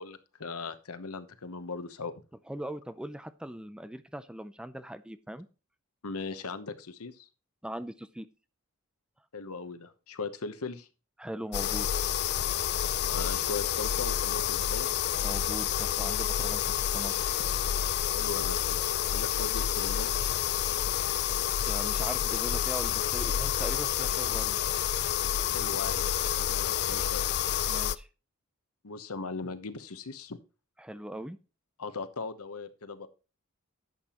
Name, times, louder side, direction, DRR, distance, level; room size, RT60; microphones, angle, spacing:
voice 1, 0.0-2.1 6.0-7.3 9.3-10.9 13.0-14.9 18.1-18.8 19.1-20.1 25.4-27.3 28.8-30.4 31.8-33.1, left 4 dB, 90° left, 11 dB, 1.0 m, -39 dB
voice 2, 2.5-5.5 7.6-8.3 11.2-11.9 15.2-16.6 16.9-17.1 21.7-24.6 27.7-28.1 30.8-31.4, right 1 dB, 5° right, 13 dB, 0.5 m, -40 dB
sound 1, 11.5-28.0, left 10 dB, 50° left, 0.4 m, -29 dB
11.0 x 7.5 x 3.0 m, 0.32 s
head